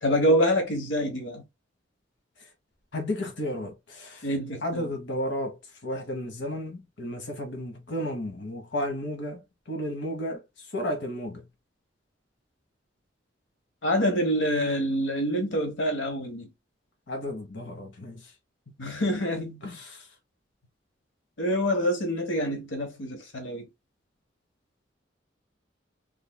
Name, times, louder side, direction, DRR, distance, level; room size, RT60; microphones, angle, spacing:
voice 1, 0.0-1.4 4.2-5.0 13.8-16.5 18.8-19.7 21.4-23.7, equal, 90° left, 1.2 m, -26 dB
voice 2, 2.9-4.3 4.6-5.6 5.8-11.4 17.1-18.3 19.6-20.1, left 1 dB, 70° left, 1.0 m, -33 dB
3.3 x 3.3 x 2.2 m
head